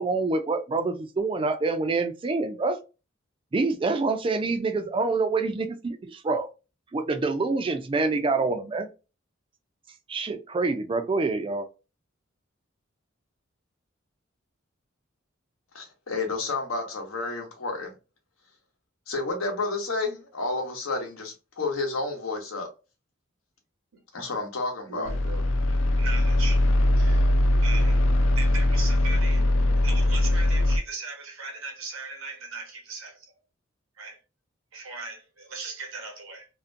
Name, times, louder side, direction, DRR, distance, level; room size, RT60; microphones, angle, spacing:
voice 1, 0.0-2.8 3.5-6.5 6.9-8.9 10.1-11.7, right 3 dB, 25° right, 0.3 m, -26 dB
voice 2, 15.7-17.9 19.1-22.7 24.1-25.1, left 3 dB, 80° left, 0.8 m, -30 dB
voice 3, 24.9-26.7 27.0-27.3 27.6-28.0 28.4-29.5 29.8-33.3 34.0-34.2 34.7-36.5, right 4 dB, 85° right, 0.8 m, -38 dB
sound 1, 25.0-30.8, left 1 dB, 65° left, 0.4 m, -21 dB
2.5 x 2.1 x 2.5 m
head